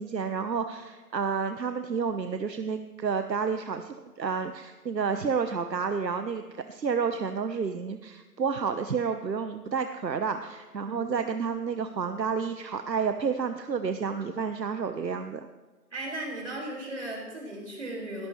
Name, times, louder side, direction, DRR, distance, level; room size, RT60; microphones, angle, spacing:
voice 1, 0.0-15.5, right 5 dB, 85° right, 8 dB, 1.1 m, -30 dB
voice 2, 15.9-18.3, right 1 dB, 45° right, -2 dB, 5.3 m, -36 dB
20.0 x 17.5 x 3.2 m, 1.2 s
figure-of-eight pair, 175°, 49 cm